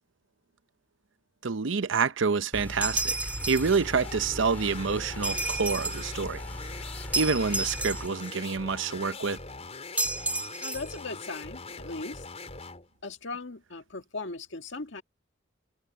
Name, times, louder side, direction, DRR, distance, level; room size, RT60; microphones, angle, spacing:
voice 1, 1.4-3.2 3.5-6.4 7.1-9.4, right 5 dB, 70° right, 0.7 m, -27 dB
sound 1, 2.5-8.1, equal, 10° left, 3.7 m, -40 dB
sound 2, 2.8-3.8 5.2-6.1 7.1-8.3 10.0-11.0, right 2 dB, 5° right, 2.0 m, -31 dB
sound 3, 3.2-12.9, left 3 dB, 35° left, 4.7 m, -42 dB
voice 2, 10.6-12.2 13.0-15.0, left 3 dB, 65° left, 2.0 m, -38 dB
head